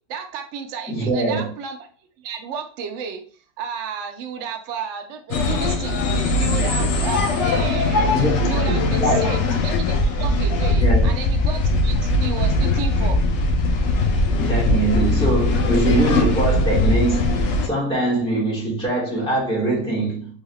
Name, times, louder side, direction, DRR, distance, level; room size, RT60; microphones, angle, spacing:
voice 1, 0.1-1.9 2.2-3.2 3.6-13.2, right 6 dB, 70° right, 0.7 m, -32 dB
voice 2, 0.9-1.5 8.1-8.5 8.7-9.3 10.8-11.1 14.4-20.4, right 2 dB, 5° left, 1.3 m, -22 dB
sound 1, 5.3-17.7, left 2 dB, 70° left, 0.7 m, -20 dB
3.5 x 3.4 x 2.2 m
omnidirectional pair, 1.8 m